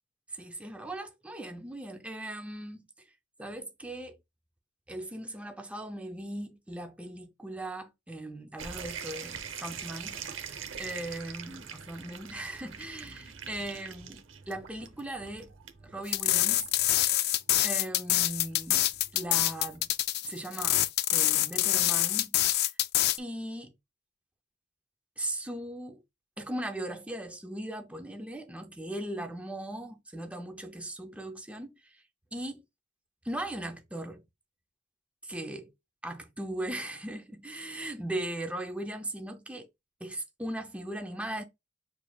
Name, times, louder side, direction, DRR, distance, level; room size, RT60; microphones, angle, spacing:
voice 1, 0.3-2.8 3.4-4.2 4.9-15.5 15.8-16.7 17.6-18.8 19.1-19.9 20.2-20.8 21.1-22.3 23.2-23.7 25.2-26.0 26.4-31.7 32.3-32.6 33.2-34.2 35.2-35.7 36.0-39.7 40.0-41.4, right 1 dB, 5° right, 0.5 m, -38 dB
sound 1, 8.6-19.9, right 7 dB, 75° right, 0.7 m, -44 dB
sound 2, 16.1-23.2, left 14 dB, 55° left, 0.3 m, -26 dB
6.6 x 3.2 x 2.3 m
head